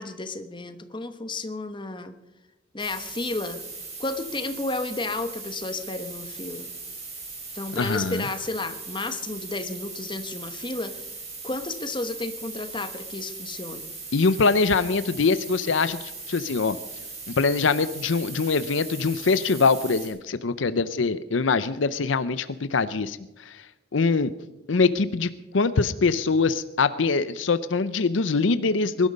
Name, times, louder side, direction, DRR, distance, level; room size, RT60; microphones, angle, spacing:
voice 1, 0.0-2.1 2.7-3.6 4.0-6.7 7.5-11.1 11.4-13.9, left 2 dB, 25° left, 9 dB, 1.1 m, -32 dB
sound 1, 2.8-20.1, right 4 dB, 35° right, 6.3 m, -39 dB
voice 2, 7.7-8.2 14.1-16.8 17.3-23.6 23.9-24.3 24.7-29.1, left 4 dB, 75° left, 13 dB, 0.6 m, -23 dB
21.5 x 12.0 x 5.2 m, 0.99 s
head